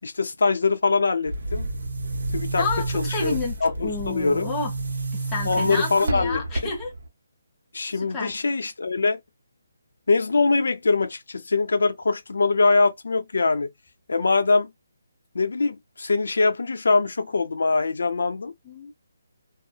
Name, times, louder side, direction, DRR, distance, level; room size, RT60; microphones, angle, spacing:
voice 1, 0.0-1.7 2.3-2.7 2.9-3.4 3.6-4.5 5.5-6.7 7.7-9.2 10.1-13.7 14.1-14.7 15.3-18.5, left 3 dB, 65° left, 0.6 m, -23 dB
Boom, 1.3-7.1, right 2 dB, 60° right, 0.8 m, -30 dB
voice 2, 2.6-4.7 5.1-6.9 7.9-8.4 18.7-18.9, left 3 dB, 10° left, 0.4 m, -30 dB
2.7 x 2.1 x 2.3 m
hypercardioid pair, 180°, 0 cm